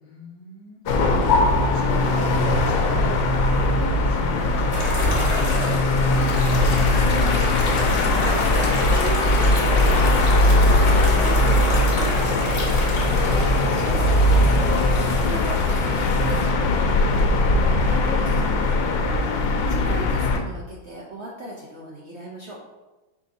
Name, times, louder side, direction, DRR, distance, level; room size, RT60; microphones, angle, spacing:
voice 1, 0.0-3.2 3.4-6.1, left 3 dB, 65° left, -3 dB, 1.0 m, -37 dB
sound 1, 0.9-20.4, left 2 dB, 85° left, 1.3 m, -20 dB
sound 2, 4.7-16.5, left 1 dB, 45° left, 0.4 m, -29 dB
voice 2, 6.6-15.7 15.9-16.8 17.1-22.6, right 1 dB, 70° right, -3 dB, 0.6 m, -38 dB
5.0 x 2.6 x 4.0 m, 1.1 s
omnidirectional pair, 2.0 m